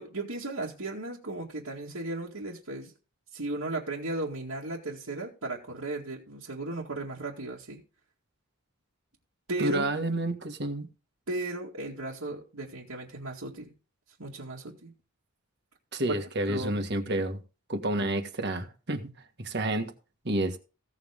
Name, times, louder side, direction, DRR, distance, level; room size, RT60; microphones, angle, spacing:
voice 1, 0.0-2.9 3.3-7.8 9.5-9.9 11.3-13.7 14.2-14.9 16.1-16.8, right 2 dB, 80° right, 2.2 m, -36 dB
voice 2, 9.6-10.9 15.9-17.4 17.7-19.1 19.4-19.9 20.2-20.6, right 1 dB, 50° right, 1.6 m, -29 dB
16.0 x 7.5 x 3.6 m
head